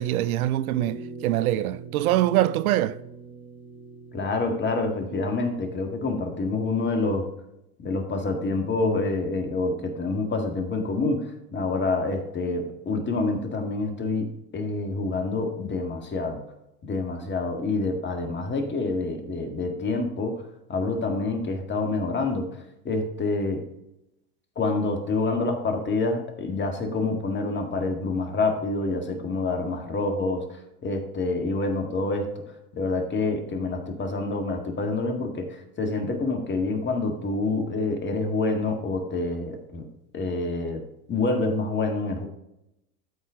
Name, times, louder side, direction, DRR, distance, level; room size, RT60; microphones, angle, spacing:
voice 1, 0.0-3.0, right 14 dB, 70° right, 0.5 m, -24 dB
sound 1, 0.7-5.7, right 5 dB, 55° right, 1.5 m, -42 dB
voice 2, 4.1-7.3 7.8-16.4 16.9-20.4 20.7-22.5 22.8-23.7 24.6-32.3 32.7-39.9 40.1-40.8 41.1-42.3, left 3 dB, 25° left, 1.8 m, -27 dB
13.0 x 4.3 x 3.6 m
hypercardioid pair, 100°, 44 cm